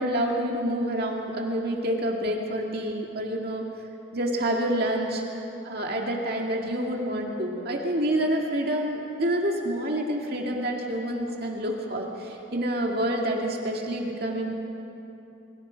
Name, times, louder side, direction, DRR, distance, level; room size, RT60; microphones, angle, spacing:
voice 1, 0.0-3.7 4.1-5.2 5.6-14.5, right 1 dB, 50° right, 0 dB, 2.2 m, -28 dB
29.0 x 24.0 x 5.2 m, 2.9 s
head